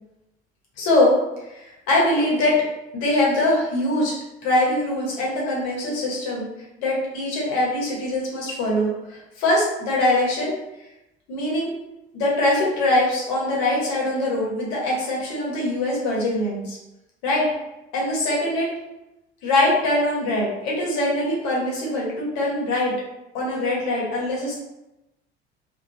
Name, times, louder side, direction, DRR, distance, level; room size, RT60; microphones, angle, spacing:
voice 1, 0.8-1.1 1.5-2.6 2.9-4.1 4.4-6.5 6.8-10.5 11.3-11.7 12.1-16.8 17.2-17.5 17.9-18.7 19.4-22.9 23.3-24.5, left 1 dB, 65° left, -4 dB, 1.1 m, -22 dB
2.7 x 2.1 x 3.0 m, 0.95 s
hypercardioid pair, 60°, 31 cm